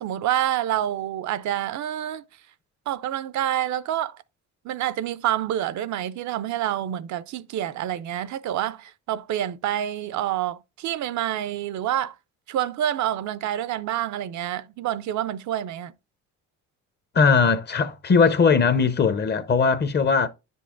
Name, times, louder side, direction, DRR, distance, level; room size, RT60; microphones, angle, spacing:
voice 1, 0.0-2.2 2.9-4.2 4.6-12.1 12.5-15.9, right 12 dB, 70° right, 0.5 m, -27 dB
voice 2, 17.1-20.3, left 5 dB, 35° left, 0.6 m, -19 dB
9.6 x 5.4 x 2.5 m
cardioid pair, 90°, 30 cm